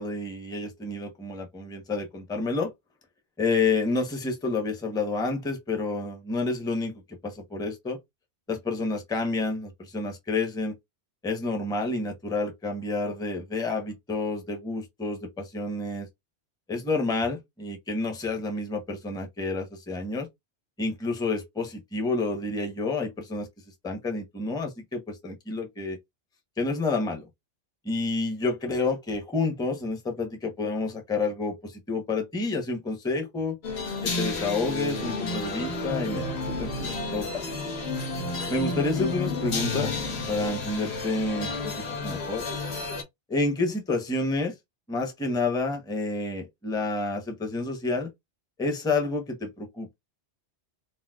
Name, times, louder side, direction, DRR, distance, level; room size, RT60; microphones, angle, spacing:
voice 1, 0.0-2.7 3.4-6.9 7.2-8.0 8.5-10.7 11.2-16.1 16.7-20.3 20.8-23.5 23.8-26.0 26.6-27.2 27.8-33.6 34.0-37.4 38.5-39.9 40.3-41.7 42.0-42.5 43.3-44.5 44.9-48.1 48.6-49.9, left 3 dB, 5° left, 0.7 m, -29 dB
sound 1, 33.6-43.0, left 3 dB, 65° left, 1.2 m, -31 dB
4.2 x 2.0 x 2.3 m
omnidirectional pair, 1.2 m